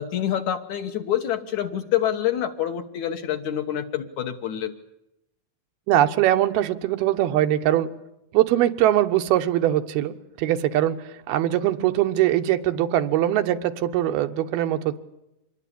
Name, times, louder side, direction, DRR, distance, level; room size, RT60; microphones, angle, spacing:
voice 1, 0.0-4.8, left 11 dB, 65° left, 7 dB, 2.1 m, -26 dB
voice 2, 5.9-7.9 8.3-15.0, right 12 dB, 90° right, 8 dB, 3.1 m, -22 dB
26.0 x 20.5 x 8.7 m, 0.88 s
omnidirectional pair, 4.3 m